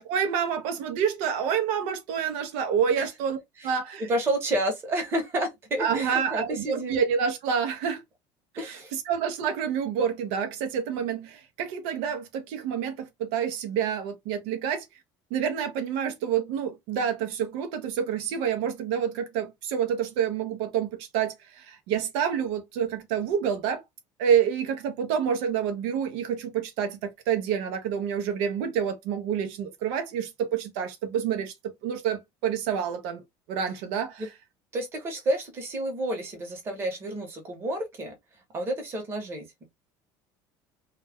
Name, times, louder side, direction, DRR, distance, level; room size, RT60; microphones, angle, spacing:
voice 1, 0.0-3.4 3.6-4.1 5.8-8.0 8.5-14.9 15.3-23.8 24.2-31.5 31.8-33.2 33.5-34.3, right 8 dB, 80° right, 0.6 m, -28 dB
voice 2, 4.1-6.9 8.6-8.9 34.2-34.3 34.7-38.1 38.5-39.6, right 1 dB, 25° right, 0.9 m, -30 dB
2.3 x 2.1 x 3.4 m
cardioid pair, 170°, 9 cm